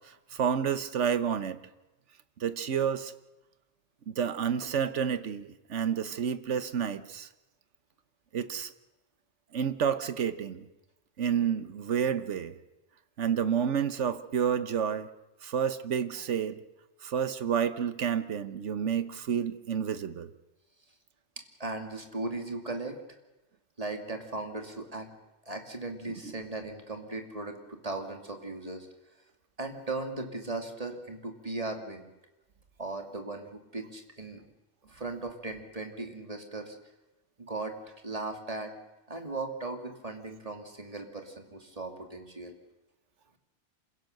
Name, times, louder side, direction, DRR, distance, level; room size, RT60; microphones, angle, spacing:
voice 1, 0.3-1.6 2.4-3.1 4.1-7.3 8.3-8.7 9.5-10.6 11.2-12.5 13.2-15.1 15.4-16.6 17.0-20.3 26.2-26.3, right 7 dB, 85° right, 12 dB, 1.4 m, -29 dB
voice 2, 21.6-23.0 23.8-25.1 25.5-28.9 29.6-32.1 32.8-34.4 34.9-36.8 37.4-38.7 39.1-42.6, right 2 dB, 30° right, 4 dB, 2.6 m, -37 dB
27.5 x 16.5 x 6.7 m, 1.0 s
omnidirectional pair, 1.2 m